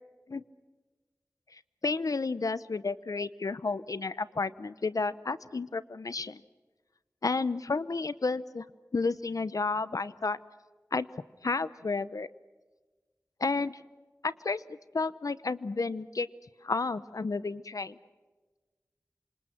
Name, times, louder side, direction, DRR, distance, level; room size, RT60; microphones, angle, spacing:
voice 1, 1.5-6.4 7.2-8.6 8.9-10.4 10.9-11.1 11.4-12.3 13.4-13.8 14.2-16.3 16.6-18.0, left 3 dB, 90° left, 16 dB, 0.8 m, -31 dB
27.5 x 26.5 x 5.9 m, 1.3 s
wide cardioid pair, 50°, 6 cm